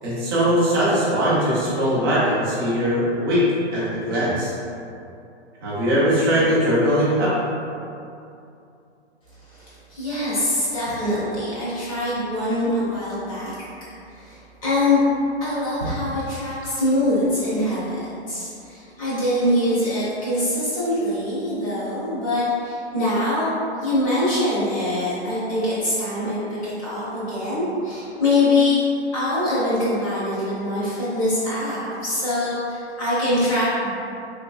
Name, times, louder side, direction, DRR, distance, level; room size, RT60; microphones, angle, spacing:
voice 1, 0.0-4.5 5.6-7.3, equal, 20° right, -9 dB, 0.5 m, -20 dB
voice 2, 9.5-13.5 14.1-15.0 15.4-18.0 18.3-23.5 23.8-28.8 29.1-33.9, left 1 dB, 30° left, -10 dB, 1.1 m, -23 dB
3.2 x 2.8 x 2.4 m, 2.6 s
hypercardioid pair, 155°, 34 cm